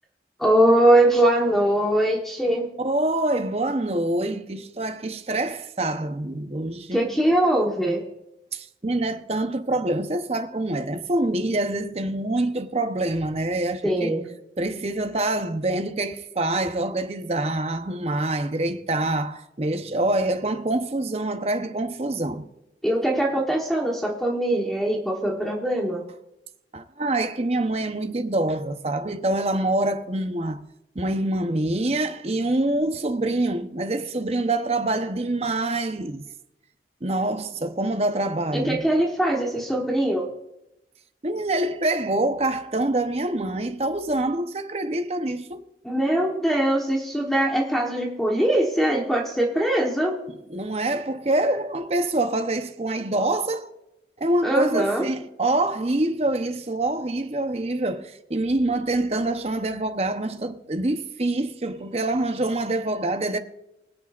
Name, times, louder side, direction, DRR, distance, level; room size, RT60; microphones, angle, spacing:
voice 1, 0.4-2.7 6.9-8.0 13.8-14.3 22.8-26.0 38.5-40.3 45.8-50.2 54.4-55.1, right 1 dB, ahead, 1.1 m, -22 dB
voice 2, 2.8-7.1 8.5-14.1 14.6-22.5 26.7-30.6 30.9-36.2 37.0-38.9 41.2-45.6 50.5-53.7 54.2-63.4, right 2 dB, 35° right, 0.8 m, -25 dB
25.0 x 8.3 x 2.5 m
head